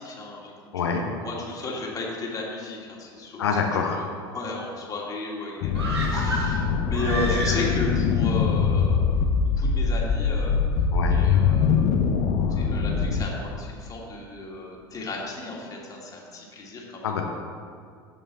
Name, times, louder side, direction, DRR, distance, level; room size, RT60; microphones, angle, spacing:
voice 1, 0.0-3.4 3.9-10.6 11.1-11.9 12.5-17.2, left 2 dB, 25° left, -3 dB, 2.5 m, -34 dB
voice 2, 0.7-1.1 3.4-4.0 10.9-11.2 17.0-17.2, left 5 dB, 75° left, 2 dB, 1.1 m, -25 dB
sound 1, 5.6-13.2, left 6 dB, 50° left, 0.9 m, -23 dB
sound 2, 5.7-8.0 8.3-8.4, right 2 dB, 80° right, 1.5 m, -31 dB
16.0 x 5.5 x 4.1 m, 2.1 s
figure-of-eight pair, 75°, 13 cm